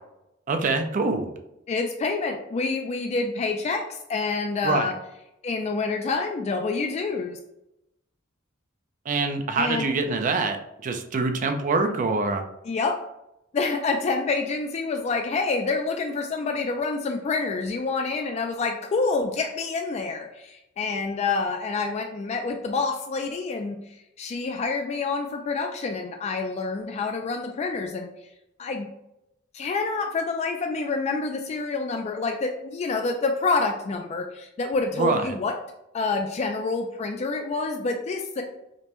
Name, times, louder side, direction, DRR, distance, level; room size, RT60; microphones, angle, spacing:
voice 1, 0.5-1.3 4.6-4.9 9.1-12.4 35.0-35.2, right 3 dB, 40° right, 7 dB, 0.4 m, -25 dB
voice 2, 1.7-4.9 5.4-7.4 9.6-9.9 12.6-13.0 13.5-28.1 28.6-28.9 29.5-35.5 35.9-38.4, left 4 dB, 35° left, 4 dB, 0.3 m, -27 dB
5.0 x 2.1 x 2.9 m, 0.87 s
head